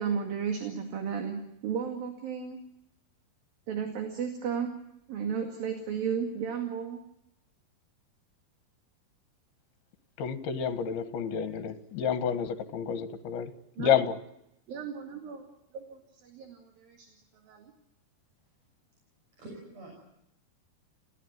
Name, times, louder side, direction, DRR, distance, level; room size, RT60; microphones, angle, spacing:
voice 1, 0.0-2.6 3.7-4.7 5.1-7.0 11.3-11.4 13.8-14.0 14.7-15.4 15.7-17.1 17.5-17.7, right 7 dB, 60° right, 3.9 m, -34 dB
voice 2, 10.2-13.5 13.8-14.2, left 8 dB, 70° left, 3.3 m, -29 dB
voice 3, 19.3-19.9, right 2 dB, 40° right, 7.4 m, -46 dB
29.0 x 17.0 x 9.4 m
omnidirectional pair, 4.8 m